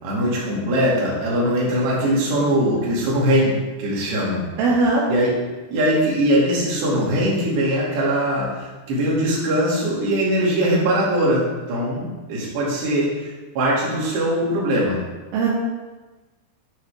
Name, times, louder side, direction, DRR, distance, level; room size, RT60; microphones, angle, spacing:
voice 1, 0.0-4.4 5.1-5.3 5.7-15.0, equal, 65° right, -6 dB, 4.0 m, -21 dB
voice 2, 4.6-5.0 15.3-15.5, right 3 dB, 80° right, -6 dB, 3.7 m, -18 dB
12.5 x 5.9 x 3.5 m, 1.2 s
omnidirectional pair, 5.6 m